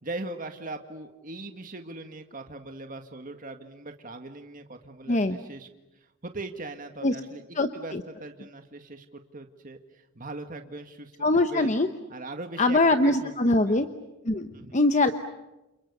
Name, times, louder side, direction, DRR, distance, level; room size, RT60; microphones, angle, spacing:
voice 1, 0.0-5.7 6.2-7.9 8.2-9.8 10.2-11.1 11.5-11.8 12.1-13.8 14.5-14.8, right 2 dB, 40° right, 6 dB, 1.9 m, -40 dB
voice 2, 7.6-8.0 11.2-11.9 12.6-13.9 14.2-15.1, left 2 dB, 35° left, 8 dB, 1.0 m, -23 dB
30.0 x 28.0 x 6.9 m, 0.99 s
head